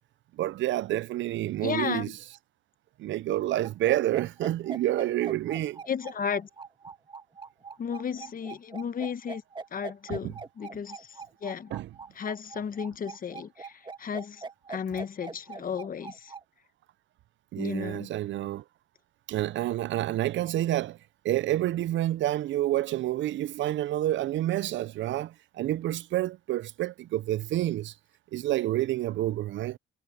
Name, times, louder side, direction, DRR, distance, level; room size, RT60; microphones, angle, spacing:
voice 1, 0.4-2.1 3.0-5.8 10.1-10.3 11.7-11.9 17.5-18.6 19.3-21.0 21.2-27.9 28.3-29.8, right 14 dB, 70° right, 0.5 m, -28 dB
voice 2, 1.6-2.1 5.9-6.5 7.8-9.4 9.7-11.7 12.1-16.3 17.6-18.1, left 7 dB, 45° left, 1.1 m, -34 dB
sound 1, 3.6-16.4, right 4 dB, 25° right, 1.9 m, -42 dB
cardioid pair, 90°, 20 cm